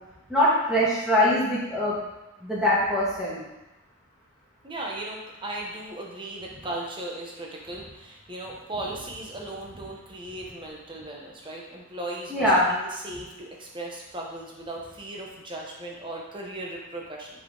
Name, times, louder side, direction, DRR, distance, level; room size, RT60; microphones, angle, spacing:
voice 1, 0.3-1.9 2.4-3.4 12.3-12.7, left 1 dB, 5° right, -9 dB, 2.1 m, -22 dB
voice 2, 4.6-17.3, right 1 dB, 25° right, -2 dB, 1.0 m, -37 dB
6.1 x 4.2 x 3.9 m, 0.98 s
head